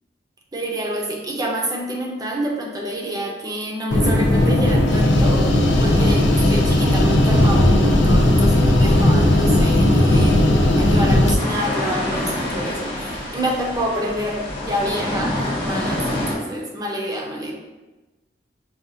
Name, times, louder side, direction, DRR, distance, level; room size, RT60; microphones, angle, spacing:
voice 1, 0.5-5.5 5.8-10.5 10.8-17.5, equal, 20° right, -1 dB, 0.6 m, -27 dB
sound 1, 3.9-11.3, left 1 dB, 90° left, 0.6 m, -16 dB
sound 2, 11.4-16.3, left 1 dB, 30° left, 0.9 m, -27 dB
6.1 x 2.3 x 2.6 m, 1.1 s
head